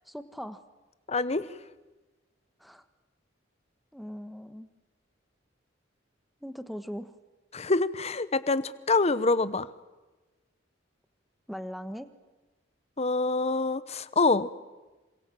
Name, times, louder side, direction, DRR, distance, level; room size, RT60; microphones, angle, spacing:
voice 1, 0.0-0.6 2.6-2.8 3.9-4.7 6.4-7.1 11.5-12.1, equal, ahead, 11 dB, 1.4 m, -39 dB
voice 2, 1.1-1.4 7.5-9.7 13.0-14.6, left 3 dB, 35° left, 15 dB, 1.0 m, -26 dB
27.5 x 26.0 x 7.8 m, 1.2 s
head